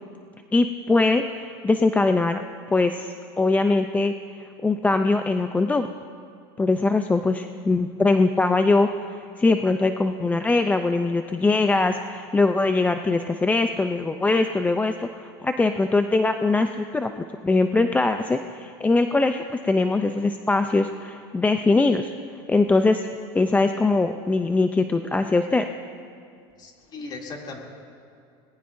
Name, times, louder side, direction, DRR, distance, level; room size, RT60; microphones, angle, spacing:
voice 1, 0.5-2.4 2.7-5.9 6.6-22.1 22.5-23.1 23.3-25.7, left 3 dB, 10° left, 7 dB, 0.4 m, -22 dB
voice 2, 26.6-27.6, left 3 dB, 35° left, 0 dB, 2.7 m, -37 dB
24.5 x 19.5 x 2.6 m, 2.4 s
supercardioid pair, 120°, 13 cm